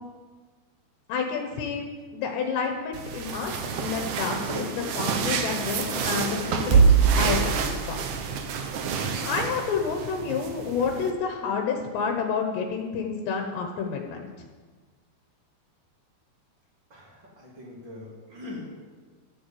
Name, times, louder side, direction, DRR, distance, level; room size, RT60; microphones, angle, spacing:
voice 1, 1.1-6.9 7.2-8.2 9.2-14.2, left 5 dB, 75° left, 2 dB, 3.2 m, -29 dB
sound 1, 2.9-11.1, right 6 dB, 75° right, 1.8 m, -26 dB
voice 2, 16.9-18.8, left 2 dB, 30° right, -3 dB, 3.2 m, -42 dB
12.5 x 7.9 x 8.4 m, 1.4 s
omnidirectional pair, 5.1 m